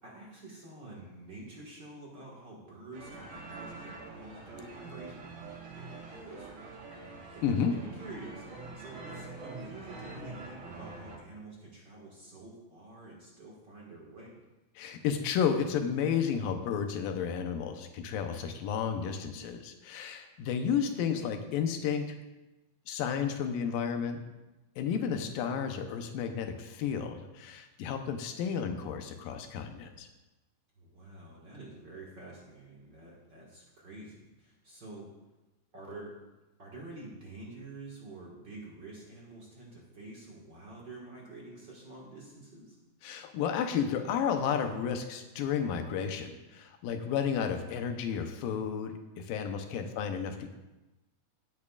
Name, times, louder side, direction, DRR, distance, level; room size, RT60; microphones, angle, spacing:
voice 1, 0.0-14.4 20.4-20.7 30.8-35.1 35.7-36.2 36.6-42.8 49.7-50.0, right 2 dB, 40° right, -4 dB, 1.9 m, -48 dB
sound 1, 2.9-11.2, right 3 dB, 85° right, 3.9 m, -45 dB
voice 2, 7.4-7.7 14.8-22.1 22.9-24.2 24.8-30.1 43.0-50.6, left 7 dB, 85° left, 6 dB, 2.6 m, -32 dB
17.0 x 8.9 x 2.4 m, 1.0 s
omnidirectional pair, 3.9 m